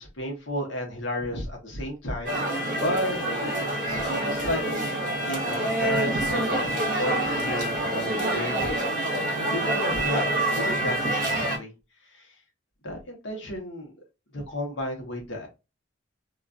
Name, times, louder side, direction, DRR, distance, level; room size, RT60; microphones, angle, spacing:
voice 1, 0.0-3.2 3.7-4.9 5.2-8.9 9.4-11.7 12.0-12.4 12.8-13.9 14.3-15.5, equal, 65° left, 1 dB, 0.8 m, -33 dB
sound 1, 2.3-11.6, right 1 dB, 40° right, 0.9 m, -27 dB
2.4 x 2.3 x 2.4 m, 0.27 s
head